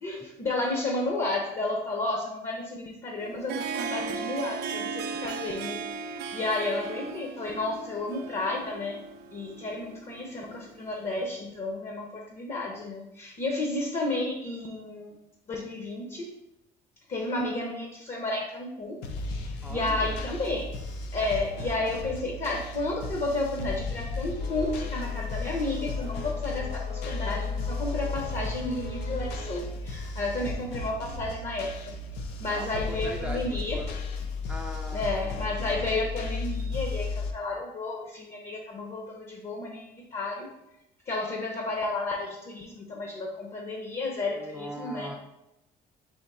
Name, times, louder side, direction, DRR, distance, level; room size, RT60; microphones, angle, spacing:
voice 1, 0.0-5.8 6.3-9.0 9.3-15.2 15.5-16.4 17.1-19.0 19.3-20.7 21.1-32.0 32.4-33.8 34.9-40.5 41.1-45.1, left 2 dB, 40° left, 0 dB, 0.7 m, -32 dB
Harp, 3.2-10.9, right 5 dB, 80° right, 0.4 m, -37 dB
sound 1, 19.0-37.3, left 3 dB, 90° left, 0.5 m, -34 dB
voice 2, 19.6-20.3 32.5-33.9 34.5-35.3 44.4-45.2, right 1 dB, 5° right, 0 dB, 0.4 m, -41 dB
sound 2, 24.4-29.6, left 4 dB, 70° left, 1.2 m, -44 dB
3.6 x 2.9 x 4.1 m, 0.89 s
cardioid pair, 110°, 17 cm